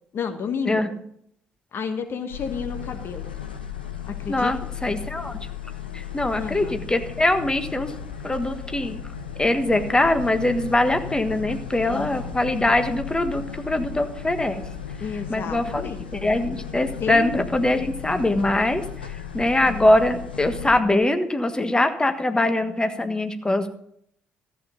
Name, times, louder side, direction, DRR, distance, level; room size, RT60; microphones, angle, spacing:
voice 1, 0.1-0.8 1.7-3.2 4.1-4.5 6.4-6.7 11.8-12.3 15.0-16.0 17.0-17.4 19.7-19.8, left 6 dB, 45° left, 8 dB, 1.3 m, -31 dB
sound 1, 2.3-20.8, left 8 dB, 85° left, 1.0 m, -35 dB
voice 2, 4.3-5.4 5.9-7.9 8.2-9.0 9.4-14.6 15.3-15.8 16.1-18.8 19.3-23.7, left 1 dB, 15° left, 8 dB, 1.4 m, -22 dB
14.0 x 9.0 x 5.2 m, 0.68 s
figure-of-eight pair, 45°, 5 cm